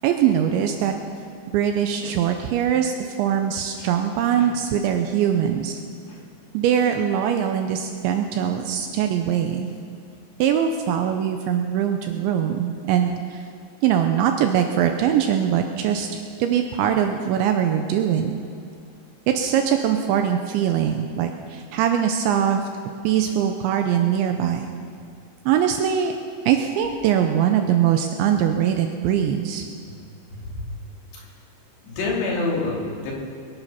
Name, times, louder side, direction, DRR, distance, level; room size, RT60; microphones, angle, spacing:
voice 1, 0.0-1.0 1.5-5.8 6.5-9.7 10.4-13.4 13.8-18.3 19.3-22.6 23.0-24.6 25.5-26.1 26.5-29.7, right 9 dB, 85° right, 5 dB, 2.8 m, -22 dB
voice 2, 30.3-30.6 31.1-31.2 31.8-32.8 33.0-33.1, left 3 dB, 60° left, -4 dB, 4.8 m, -27 dB
22.0 x 10.0 x 5.6 m, 2.5 s
omnidirectional pair, 5.8 m